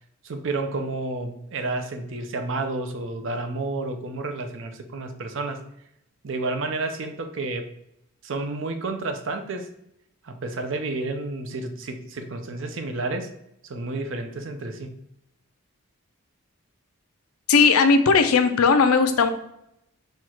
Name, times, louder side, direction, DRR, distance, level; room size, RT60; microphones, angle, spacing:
voice 1, 0.2-5.6 6.2-7.7 8.2-9.7 10.2-13.3 13.6-15.0, right 2 dB, 60° right, 6 dB, 0.5 m, -30 dB
voice 2, 17.5-19.3, left 5 dB, 90° left, 8 dB, 0.5 m, -17 dB
4.5 x 2.4 x 4.3 m, 0.79 s
head